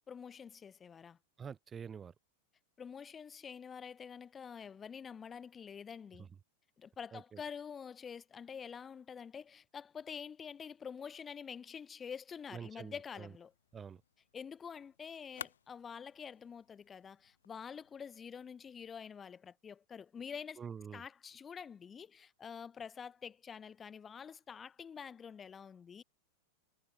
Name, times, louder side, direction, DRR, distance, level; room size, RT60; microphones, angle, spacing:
voice 1, 0.1-1.2 2.8-6.3 6.8-13.5 14.3-20.6 20.9-26.0, left 7 dB, 20° left, 0.6 m, -47 dB
voice 2, 1.4-2.1 6.2-6.3 7.1-7.4 12.5-13.3 13.7-14.0 20.6-21.0, right 7 dB, 20° right, 0.4 m, -46 dB
sound 1, 13.0-18.9, left 8 dB, 65° left, 0.8 m, -55 dB
figure-of-eight pair, 90°, 0 cm